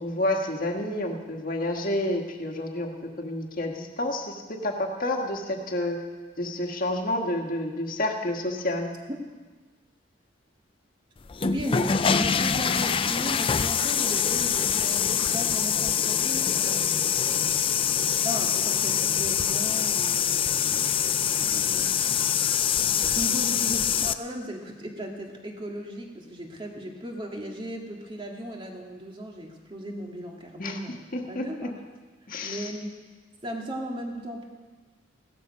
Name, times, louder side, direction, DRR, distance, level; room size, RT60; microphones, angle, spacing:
voice 1, 0.0-6.0 6.4-8.9 30.6-30.8 31.1-31.7 32.3-32.7, left 1 dB, 45° left, 2 dB, 1.6 m, -29 dB
sound 1, 11.3-24.1, left 8 dB, 30° left, 0.4 m, -24 dB
voice 2, 11.4-17.0 18.0-20.5 21.4-22.1 22.9-31.0 31.3-31.8 32.4-33.0 33.4-34.5, equal, 25° right, 1 dB, 2.0 m, -36 dB
16.5 x 13.0 x 5.3 m, 1.3 s
head